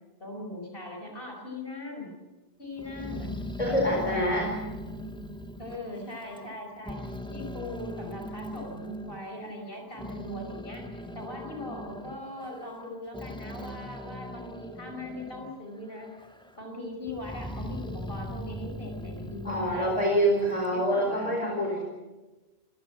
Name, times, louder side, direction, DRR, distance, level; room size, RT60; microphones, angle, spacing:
voice 1, 0.2-2.1 2.6-3.4 3.6-4.2 4.9-5.2 5.6-7.0 7.3-10.9 11.1-16.1 16.6-20.2 20.7-21.4, left 2 dB, 60° left, 2 dB, 5.5 m, -40 dB
Growling, 2.8-6.5 6.8-9.2 9.7-15.6 15.9-16.6 17.1-20.8, equal, 5° left, 1.5 m, -40 dB
voice 2, 3.6-4.5 19.4-21.8, equal, 35° left, -1 dB, 4.5 m, -26 dB
27.0 x 15.0 x 8.9 m, 1.2 s
omnidirectional pair, 1.0 m